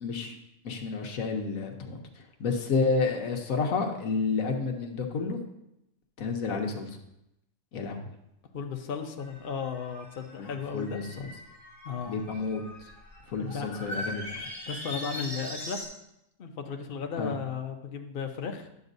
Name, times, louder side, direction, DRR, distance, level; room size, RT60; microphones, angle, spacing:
voice 1, 0.0-0.4 0.6-5.4 6.2-6.9 7.7-8.0 10.4-11.0 12.1-12.6 13.3-14.4 17.2-17.3, left 4 dB, 70° left, 3 dB, 1.3 m, -30 dB
voice 2, 8.5-11.0 11.8-12.2 13.4-13.7 14.7-15.8 16.4-18.7, left 6 dB, 50° left, 3 dB, 0.7 m, -35 dB
sound 1, 9.2-15.9, equal, 15° right, 3.1 m, -41 dB
10.5 x 7.3 x 2.6 m, 0.84 s
omnidirectional pair, 1.5 m